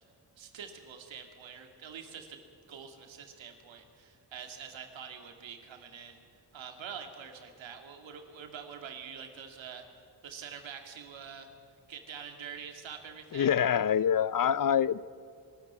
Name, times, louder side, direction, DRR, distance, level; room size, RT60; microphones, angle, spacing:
voice 1, 0.4-2.4 2.7-6.2 6.5-9.9 10.2-11.5 11.9-13.5, right 7 dB, 80° right, 5 dB, 2.5 m, -45 dB
voice 2, 13.3-15.0, left 9 dB, 45° left, 20 dB, 0.6 m, -25 dB
23.0 x 13.5 x 9.5 m, 2.4 s
supercardioid pair, 50°, 45 cm